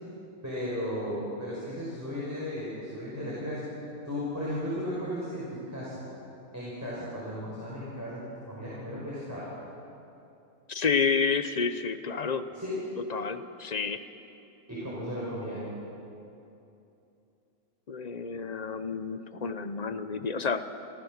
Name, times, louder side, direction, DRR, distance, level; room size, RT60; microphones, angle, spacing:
voice 1, 0.4-3.7 4.0-6.1 6.5-9.5 12.5-12.9 14.7-15.7, equal, 10° right, -8 dB, 5.5 m, -35 dB
voice 2, 10.7-12.5 13.1-14.0 17.9-20.6, left 5 dB, 40° left, 10 dB, 0.6 m, -30 dB
30.0 x 14.0 x 6.6 m, 2.7 s
omnidirectional pair, 1.5 m